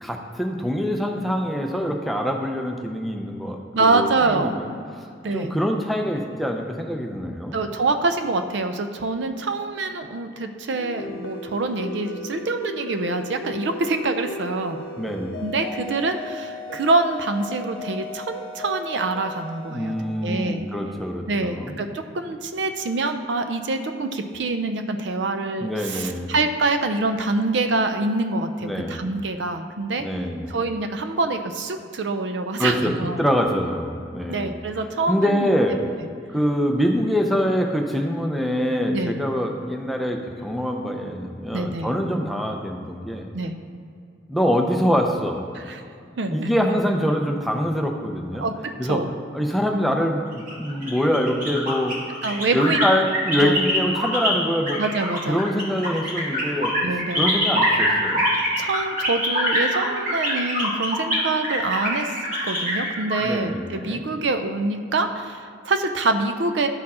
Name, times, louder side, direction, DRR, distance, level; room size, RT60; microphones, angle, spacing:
voice 1, 0.0-4.7 5.3-7.6 15.0-15.4 19.7-21.8 25.6-26.3 28.6-29.0 30.0-30.5 32.6-32.9 33.2-34.6 35.1-35.8 36.3-43.3 44.3-45.4 46.3-48.5 48.8-49.0 49.3-52.0 52.5-54.8 55.3-56.8 57.1-58.3 63.2-64.1, equal, ahead, 2 dB, 0.5 m, -24 dB
voice 2, 3.7-4.5 5.2-5.5 7.5-14.8 15.4-20.0 20.2-20.6 21.3-30.1 30.5-33.2 34.3-35.5 38.9-39.1 41.5-41.9 43.3-43.5 45.7-45.8 46.2-46.5 48.4-49.1 52.2-52.8 53.4-53.5 54.8-55.4 56.8-57.2 58.6-62.1 62.4-66.7, right 3 dB, 70° right, 8 dB, 0.5 m, -25 dB
sound 1, 10.7-21.0, left 2 dB, 75° left, 0.8 m, -36 dB
sound 2, 50.3-54.3 54.7-63.2, equal, 45° right, 2.1 m, -24 dB
11.5 x 4.4 x 4.2 m, 2.4 s
head